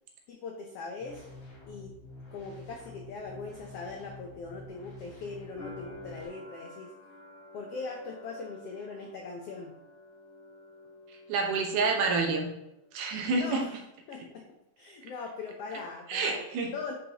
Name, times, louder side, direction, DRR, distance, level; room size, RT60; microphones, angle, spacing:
voice 1, 0.3-1.3 1.7-1.9 2.3-6.9 7.5-9.7 13.3-13.7 14.1-14.4 14.8-16.4 16.7-16.9, left 4 dB, 85° left, 1 dB, 1.3 m, -40 dB
sound 1, 1.0-6.3, left 2 dB, 60° left, 4.0 m, -48 dB
sound 2, 5.6-12.4 12.6-13.5, left 2 dB, 35° left, 3.0 m, -50 dB
voice 2, 11.3-12.5 12.9-13.7 16.1-16.7, right 4 dB, 75° right, 1 dB, 2.6 m, -28 dB
9.3 x 5.4 x 2.9 m, 0.87 s
omnidirectional pair, 3.7 m